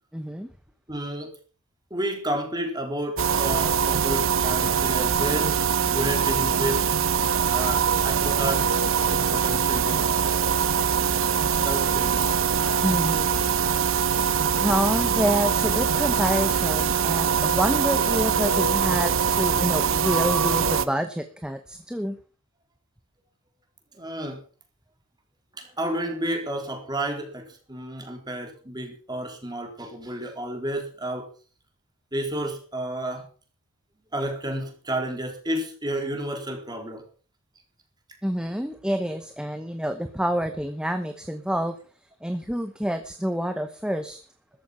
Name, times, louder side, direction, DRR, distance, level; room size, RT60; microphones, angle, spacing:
voice 1, 0.1-0.5 12.8-13.3 14.4-22.2 38.2-41.8 42.2-44.2, equal, 5° right, 8 dB, 0.9 m, -27 dB
voice 2, 0.9-1.3 1.9-5.6 5.9-6.8 7.4-8.7 9.1-10.0 10.8-10.9 11.6-12.2 23.9-24.4 25.6-31.3 32.1-33.3 34.1-37.0, right 1 dB, 20° right, 4 dB, 3.9 m, -31 dB
sound 1, 3.2-20.9, right 7 dB, 65° right, 1.0 m, -23 dB
14.0 x 12.5 x 5.7 m, 0.40 s
head